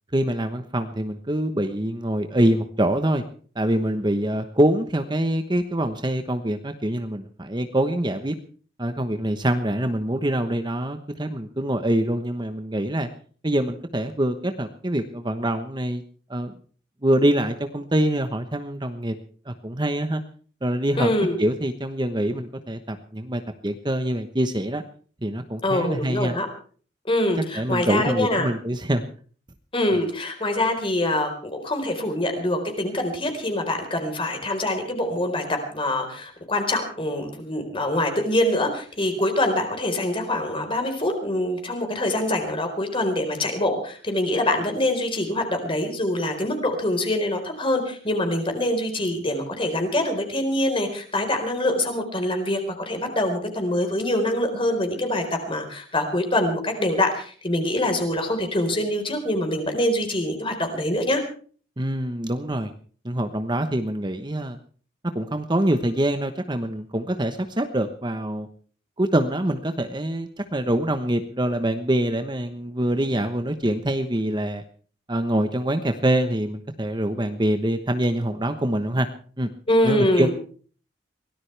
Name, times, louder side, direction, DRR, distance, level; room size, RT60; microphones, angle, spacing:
voice 1, 0.1-3.2 3.5-8.4 8.8-13.1 13.4-16.0 16.3-16.5 17.0-19.1 19.5-20.2 20.6-21.1 21.4-24.8 25.2-26.3 27.5-29.1 61.8-62.7 63.0-64.6 65.1-68.5 69.0-74.6 75.1-79.1 79.4-79.5 79.8-80.3, right 1 dB, 25° right, 8 dB, 1.1 m, -25 dB
voice 2, 20.9-21.4 25.6-26.5 27.0-28.5 29.7-52.6 52.9-61.2 79.7-80.3, left 1 dB, 30° left, 5 dB, 4.4 m, -24 dB
23.5 x 18.0 x 3.4 m, 0.44 s
head